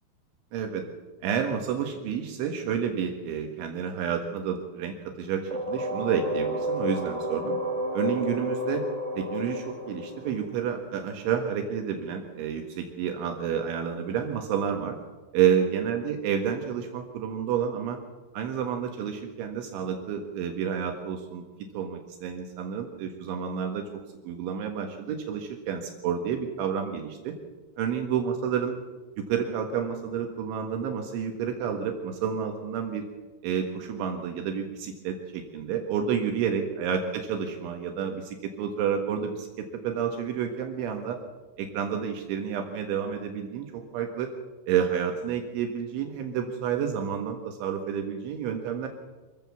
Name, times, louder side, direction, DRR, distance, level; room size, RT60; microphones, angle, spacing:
voice 1, 0.5-0.8 1.2-7.6 7.9-8.8 9.2-15.0 15.3-18.0 18.3-21.5 21.7-23.8 24.2-27.3 27.8-28.7 29.2-33.0 33.4-41.2 41.6-44.3 44.7-48.9, right 8 dB, 75° right, 3 dB, 4.0 m, -30 dB
sound 1, 5.5-11.2, equal, 10° right, 2.2 m, -31 dB
26.0 x 16.0 x 7.2 m, 1.2 s
omnidirectional pair, 5.6 m